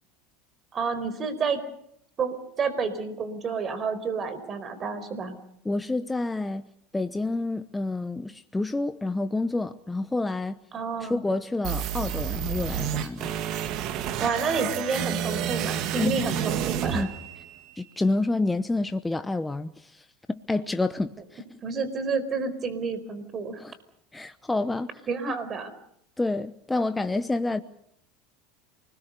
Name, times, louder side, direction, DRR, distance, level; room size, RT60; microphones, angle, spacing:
voice 1, 0.7-1.6 2.2-5.4 10.7-11.2 14.2-17.1 21.6-23.6 25.1-25.7, right 5 dB, 35° right, 4.6 m, -29 dB
voice 2, 5.6-6.7 6.9-10.6 11.0-13.4 16.0-16.2 16.9-17.1 17.8-21.4 23.6-23.7 24.1-24.9 26.2-27.6, left 2 dB, 10° left, 0.9 m, -28 dB
sound 1, 11.6-17.7, right 9 dB, 55° right, 2.1 m, -30 dB
28.0 x 20.5 x 6.8 m
hypercardioid pair, 100°, 0 cm